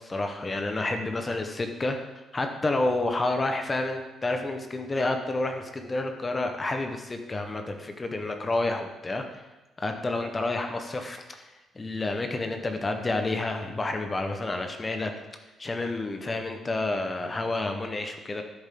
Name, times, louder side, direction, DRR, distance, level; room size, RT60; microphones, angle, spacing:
voice 1, 0.1-2.0 2.3-9.2 9.8-11.5 11.7-15.1 15.6-18.4, left 2 dB, 25° left, 5 dB, 1.2 m, -29 dB
13.0 x 7.4 x 3.9 m, 1.1 s
cardioid pair, 90°, 0 cm